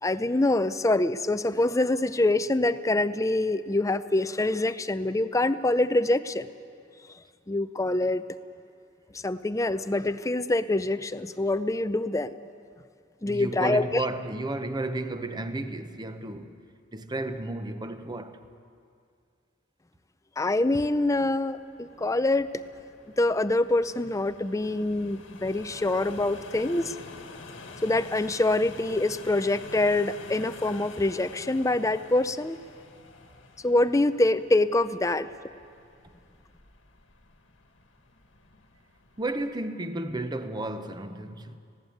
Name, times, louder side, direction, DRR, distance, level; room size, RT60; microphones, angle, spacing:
voice 1, 0.0-6.5 7.5-8.2 9.2-12.4 13.2-14.1 20.4-22.5 23.2-27.0 27.8-32.6 33.6-35.3, left 2 dB, 15° left, 0.5 m, -25 dB
voice 2, 13.3-16.5 16.9-18.4 39.2-41.6, right 2 dB, 20° right, 0.9 m, -33 dB
sound 1, 21.4-39.7, left 3 dB, 70° left, 1.7 m, -48 dB
19.0 x 16.5 x 9.3 m
head